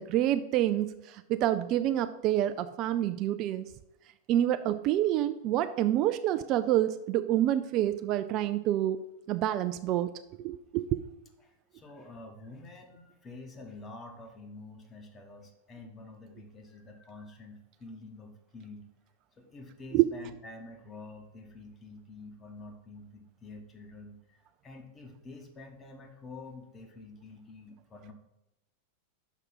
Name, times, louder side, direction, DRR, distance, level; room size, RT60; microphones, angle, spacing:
voice 1, 0.0-3.7 4.3-9.0 9.3-10.1 10.4-11.0 19.9-20.1, right 12 dB, 40° right, 11 dB, 0.3 m, -27 dB
voice 2, 11.4-18.9 19.4-28.1, left 2 dB, 20° left, 3 dB, 1.2 m, -48 dB
6.1 x 5.4 x 5.6 m, 0.92 s
figure-of-eight pair, 90°, 0 cm